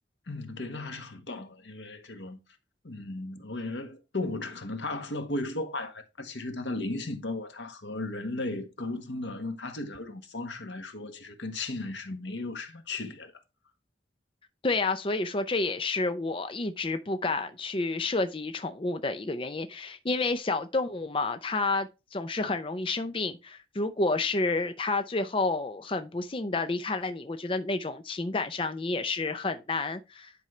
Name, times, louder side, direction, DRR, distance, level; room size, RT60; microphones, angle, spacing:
voice 1, 0.3-2.4 2.8-13.3, left 2 dB, 90° left, 1.5 m, -36 dB
voice 2, 14.6-30.3, left 3 dB, 30° left, 0.6 m, -30 dB
10.5 x 5.3 x 3.2 m
head